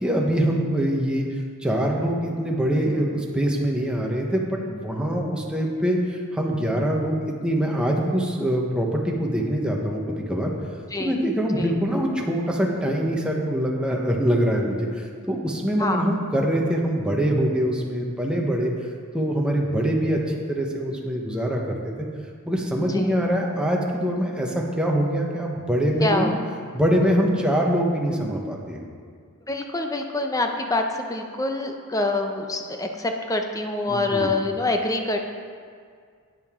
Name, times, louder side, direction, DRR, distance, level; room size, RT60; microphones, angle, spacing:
voice 1, 0.0-1.3 1.6-10.5 11.0-18.7 19.1-20.2 20.5-21.9 22.5-26.3 26.7-28.8 33.9-34.3, equal, 5° right, -1 dB, 1.1 m, -24 dB
voice 2, 26.0-26.3 29.5-35.2, left 2 dB, 15° left, 4 dB, 0.7 m, -26 dB
10.5 x 9.2 x 3.7 m, 2.1 s
head